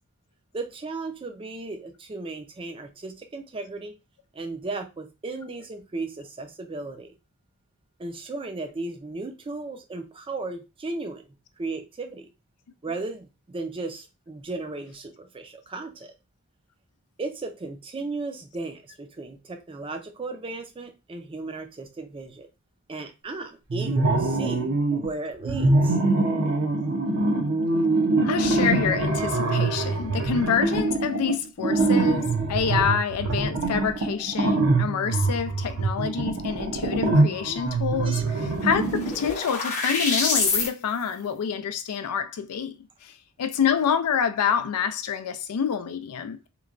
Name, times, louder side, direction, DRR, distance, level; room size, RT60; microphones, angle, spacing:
voice 1, 0.5-3.9 4.3-7.2 8.0-11.2 11.6-12.3 12.8-16.1 17.2-22.5 22.9-26.0 38.1-38.2, right 3 dB, 25° right, 0.4 m, -35 dB
sound 1, 23.7-25.1 25.4-39.3, right 2 dB, 80° right, 0.7 m, -24 dB
voice 2, 28.2-46.5, left 7 dB, 90° left, 0.4 m, -27 dB
sound 2, 37.8-37.9 38.2-40.7, left 4 dB, 35° left, 0.8 m, -27 dB
3.0 x 2.2 x 2.4 m
head